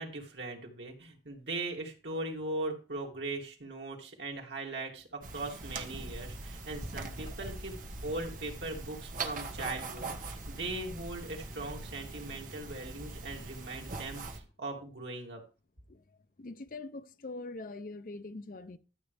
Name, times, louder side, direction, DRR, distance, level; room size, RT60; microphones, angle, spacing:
voice 1, 0.0-7.8 8.0-15.4, right 2 dB, 90° right, 2.8 m, -39 dB
sound 1, 5.2-14.4, right 3 dB, 50° right, 1.4 m, -42 dB
voice 2, 16.4-18.8, left 2 dB, 50° left, 0.6 m, -43 dB
13.0 x 7.9 x 3.4 m
head